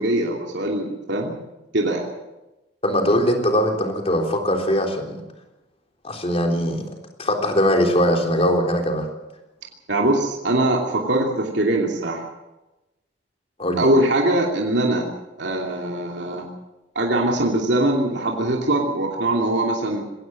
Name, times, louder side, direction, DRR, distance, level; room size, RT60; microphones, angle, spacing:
voice 1, 0.0-1.4 1.7-2.1 9.9-12.2 13.8-15.1 15.4-16.5 16.9-20.0, right 1 dB, 65° right, 0 dB, 3.0 m, -22 dB
voice 2, 2.8-5.2 6.0-6.8 7.2-9.1 13.6-13.8, equal, 35° left, 3 dB, 3.7 m, -21 dB
22.0 x 17.0 x 7.8 m, 1.0 s
head